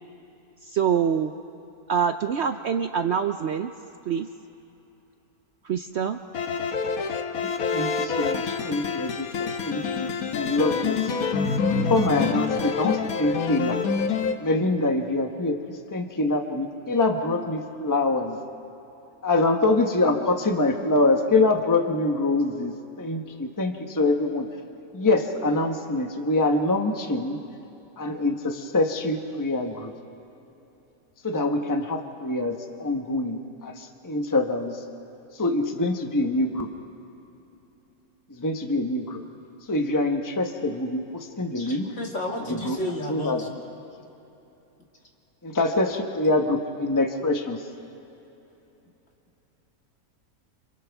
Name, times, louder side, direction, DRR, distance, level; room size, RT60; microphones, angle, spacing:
voice 1, 0.6-1.3 1.9-3.7 4.1-4.3 5.6-6.2, right 7 dB, 60° right, 8 dB, 0.8 m, -25 dB
sound 1, 6.3-14.4, left 5 dB, 75° left, 1.4 m, -27 dB
voice 2, 7.4-11.1 11.7-13.8 14.4-18.4 19.2-24.5 24.9-27.4 28.0-29.9 31.2-34.8 35.4-36.7 38.4-39.2 39.7-41.9 42.5-42.8 43.1-43.4 45.4-47.6, left 2 dB, 15° left, 3 dB, 1.1 m, -25 dB
voice 3, 41.5-43.6, left 1 dB, 50° left, -1 dB, 2.6 m, -32 dB
29.5 x 27.5 x 3.6 m, 2.9 s
omnidirectional pair, 1.6 m